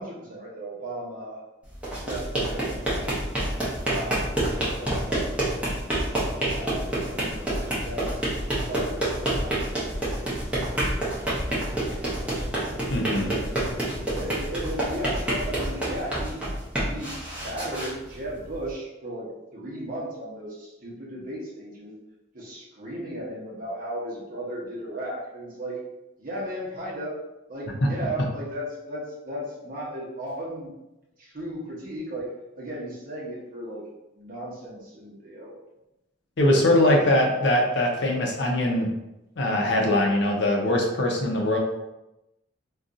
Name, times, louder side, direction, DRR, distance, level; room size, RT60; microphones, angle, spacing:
voice 1, 0.0-1.4 2.0-3.2 3.9-4.4 4.8-6.0 6.5-8.2 8.4-9.0 9.3-12.8 13.6-16.5 16.9-22.0 22.3-25.8 26.2-27.2 27.5-30.7 31.2-33.9 34.1-35.5 36.4-36.5 36.8-36.9, right 1 dB, 45° right, -5 dB, 0.9 m, -36 dB
sound 1, 1.7-18.7, right 1 dB, 5° right, 0.7 m, -28 dB
voice 2, 12.9-13.5 27.8-27.9 36.4-38.9 39.4-41.6, left 1 dB, 60° left, 0 dB, 0.5 m, -22 dB
2.5 x 2.3 x 3.8 m, 0.94 s
head